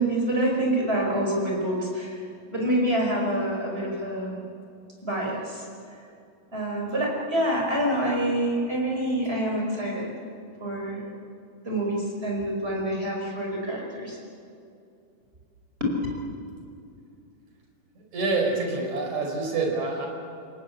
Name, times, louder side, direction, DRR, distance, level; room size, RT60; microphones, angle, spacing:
voice 1, 0.0-2.2 2.5-4.4 5.0-5.6 6.5-10.1 10.6-11.0 11.6-14.2 15.8-15.9, right 1 dB, 15° right, -1 dB, 5.0 m, -26 dB
voice 2, 18.0-20.1, right 3 dB, 60° right, 1 dB, 5.9 m, -27 dB
29.0 x 18.0 x 8.5 m, 2.5 s
omnidirectional pair, 3.8 m